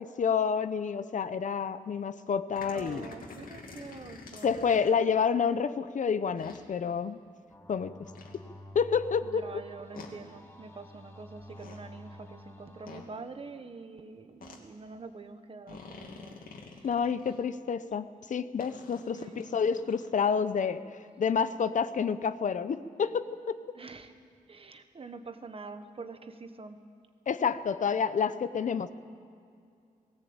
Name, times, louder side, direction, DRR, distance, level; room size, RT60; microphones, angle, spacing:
voice 1, 0.0-3.1 4.4-7.2 7.7-7.9 8.7-9.4 16.8-20.8 21.2-23.6 27.3-28.9, left 6 dB, 60° left, 13 dB, 0.7 m, -29 dB
sound 1, 2.5-5.0 6.4-6.6 8.1-8.4 9.9-10.1 11.4-11.8 12.9-13.1 14.4-14.6 15.7-17.4 18.6-20.1, left 4 dB, 75° left, 2.6 m, -48 dB
voice 2, 2.6-4.6 9.2-16.4 19.1-19.5 23.7-24.1 24.5-26.8, right 4 dB, 40° right, 9 dB, 1.3 m, -45 dB
sound 2, 7.5-13.0, left 1 dB, 20° left, 4.9 m, -50 dB
19.0 x 17.5 x 8.8 m, 2.4 s
wide cardioid pair, 135°, 15 cm